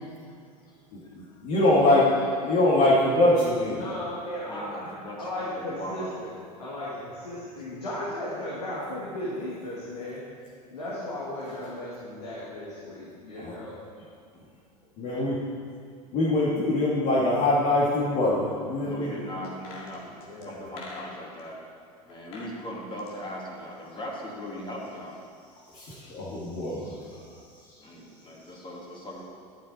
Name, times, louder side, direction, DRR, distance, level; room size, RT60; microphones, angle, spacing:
voice 1, 0.9-3.8 13.4-13.6 15.0-15.4 16.1-19.1 25.7-27.2 27.7-27.8, left 1 dB, 50° left, -8 dB, 2.2 m, -23 dB
voice 2, 3.7-10.2 10.7-13.8 15.0-15.1 20.0-20.7, left 1 dB, 85° left, -7 dB, 2.1 m, -36 dB
voice 3, 4.5-6.1 7.7-7.8 15.1-15.3 18.8-21.6 22.1-25.2 27.8-29.2, equal, 25° left, -2 dB, 2.7 m, -39 dB
sound 1, 19.4-21.5 22.1-22.5 22.8-24.2 24.5-24.6, left 3 dB, 70° left, 2.1 m, -45 dB
11.0 x 8.6 x 4.3 m, 2.3 s
hypercardioid pair, 80°, 20 cm